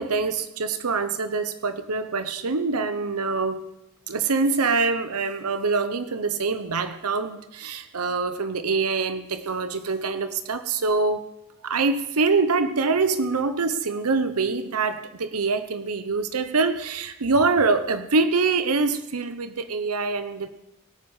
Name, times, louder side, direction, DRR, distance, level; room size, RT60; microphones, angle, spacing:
voice 1, 0.0-3.7 4.1-11.2 11.6-20.5, right 4 dB, 85° right, 10 dB, 0.9 m, -24 dB
22.5 x 9.6 x 4.9 m, 0.90 s
head